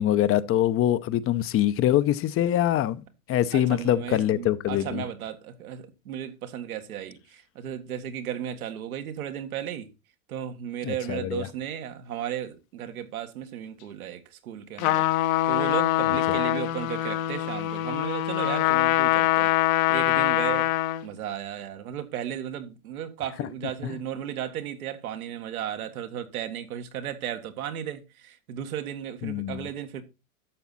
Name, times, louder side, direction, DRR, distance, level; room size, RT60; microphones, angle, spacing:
voice 1, 0.0-3.0 3.3-5.0 10.8-11.5 16.3-16.4 23.8-23.9 29.2-29.7, left 12 dB, 30° left, 0.7 m, -24 dB
voice 2, 3.5-9.9 10.3-15.1 15.5-20.7 21.0-30.0, right 10 dB, 80° right, 1.8 m, -35 dB
Trumpet, 14.8-21.1, left 14 dB, 65° left, 1.2 m, -24 dB
12.0 x 7.1 x 4.1 m
hypercardioid pair, 110°, 43 cm